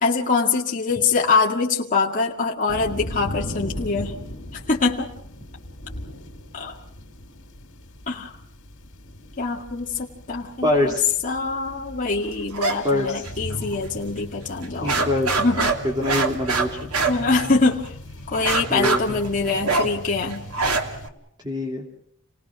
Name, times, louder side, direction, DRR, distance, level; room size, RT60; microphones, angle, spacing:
voice 1, 0.0-4.2 4.5-5.1 6.5-6.8 8.1-8.4 9.4-10.9 11.2-15.1 15.4-15.7 17.1-17.9 18.3-20.5, left 4 dB, 40° left, -2 dB, 2.2 m, -24 dB
sound 1, 2.7-21.1, left 1 dB, 65° left, 3.7 m, -38 dB
voice 2, 10.6-11.2 12.8-13.2 14.8-15.3 16.0-16.9 18.7-19.0 21.4-21.8, left 1 dB, 20° right, 0 dB, 3.0 m, -24 dB
sound 2, 12.5-12.8 13.1-13.8 14.2-14.3 14.6-17.9 18.3-21.1, right 4 dB, 90° right, 2.7 m, -25 dB
29.0 x 19.0 x 6.2 m, 0.69 s
head